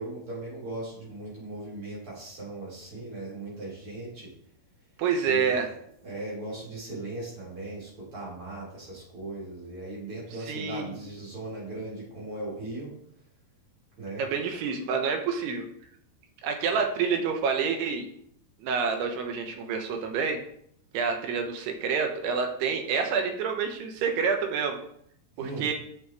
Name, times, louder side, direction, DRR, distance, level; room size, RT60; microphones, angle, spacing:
voice 1, 0.0-4.3 5.3-5.6 6.0-12.9 14.0-14.2 25.4-25.7, right 2 dB, 35° right, -7 dB, 4.8 m, -38 dB
voice 2, 5.0-5.7 10.4-10.9 14.2-15.7 16.4-18.1 18.6-20.4 20.9-24.8 25.4-25.7, right 6 dB, 85° right, 4 dB, 3.1 m, -28 dB
10.0 x 7.3 x 3.2 m, 0.68 s
omnidirectional pair, 4.7 m